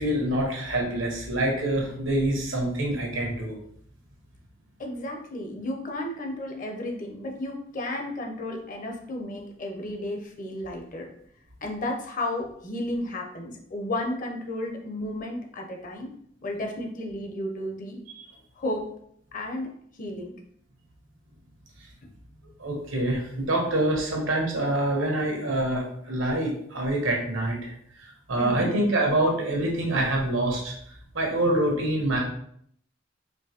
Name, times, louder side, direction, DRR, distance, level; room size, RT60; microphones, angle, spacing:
voice 1, 0.0-3.6 18.2-18.3 22.6-27.7 28.3-30.7 31.1-32.2, right 1 dB, 90° right, 0 dB, 1.1 m, -26 dB
voice 2, 4.8-11.1 11.6-16.1 16.4-18.0 18.6-18.9 19.3-19.7 20.0-20.3 22.0-22.1 28.4-28.7, left 1 dB, 45° left, 1 dB, 0.7 m, -33 dB
4.4 x 2.6 x 2.9 m, 0.66 s
head